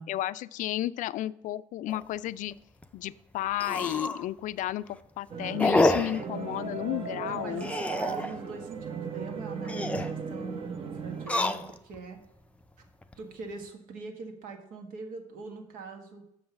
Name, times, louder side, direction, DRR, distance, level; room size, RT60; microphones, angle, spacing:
voice 1, 0.1-2.6 2.9-4.9 5.2-7.7, left 14 dB, 65° left, 17 dB, 0.4 m, -32 dB
sound 1, 1.9-2.0 2.5-2.6 2.8-2.9 3.5-4.3 4.7-5.0 5.6-6.2 7.6-8.4 9.5-10.1 11.1-12.0 12.6-13.1, left 2 dB, 10° left, 0.5 m, -28 dB
sound 2, 5.3-11.3, right 5 dB, 40° right, 0.9 m, -37 dB
voice 2, 7.3-12.2 13.2-16.2, right 4 dB, 75° right, 4 dB, 1.6 m, -42 dB
6.6 x 5.5 x 6.9 m, 0.75 s
cardioid pair, 115°, 14 cm